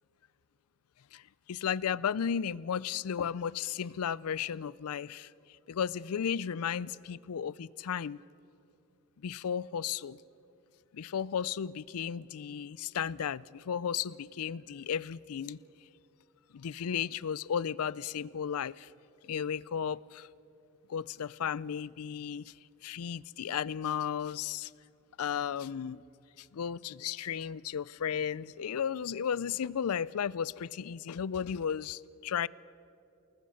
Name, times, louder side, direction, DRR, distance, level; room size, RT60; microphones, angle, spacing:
voice 1, 1.5-5.3 5.7-8.2 9.2-10.2 10.9-15.6 16.5-18.9 19.2-20.3 20.9-22.5 22.8-24.7 25.2-26.0 26.4-32.5, left 8 dB, 80° left, 0.4 m, -34 dB
28.0 x 19.5 x 6.4 m
head